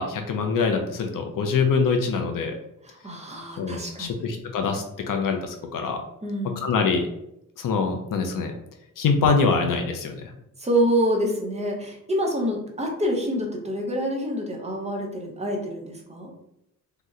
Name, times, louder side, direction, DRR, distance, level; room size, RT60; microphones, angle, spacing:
voice 1, 0.0-2.6 3.6-6.0 6.6-7.1 7.6-8.5 9.0-10.3, left 5 dB, 80° left, 4 dB, 0.5 m, -24 dB
voice 2, 2.8-4.2 6.2-6.7 10.6-16.3, equal, 20° right, 0 dB, 0.6 m, -27 dB
2.8 x 2.1 x 3.5 m, 0.80 s
wide cardioid pair, 135°, 32 cm